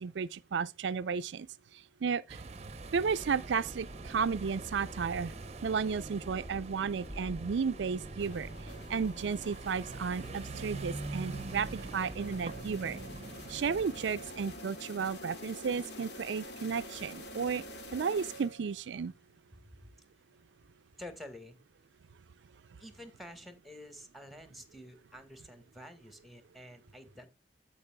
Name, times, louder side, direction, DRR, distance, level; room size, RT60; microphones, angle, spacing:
voice 1, 0.0-1.5 2.0-2.4 2.9-5.3 5.6-8.5 8.9-13.0 13.5-17.6 17.9-19.1, right 6 dB, 80° right, 0.4 m, -33 dB
sound 1, 2.3-14.7, right 3 dB, 35° right, 0.7 m, -44 dB
sound 2, 3.0-13.9, equal, 35° left, 2.1 m, -50 dB
sound 3, 8.2-18.9, left 1 dB, 65° left, 2.5 m, -48 dB
voice 2, 21.0-21.6 22.8-27.3, left 1 dB, ahead, 1.5 m, -49 dB
15.5 x 5.3 x 2.2 m
head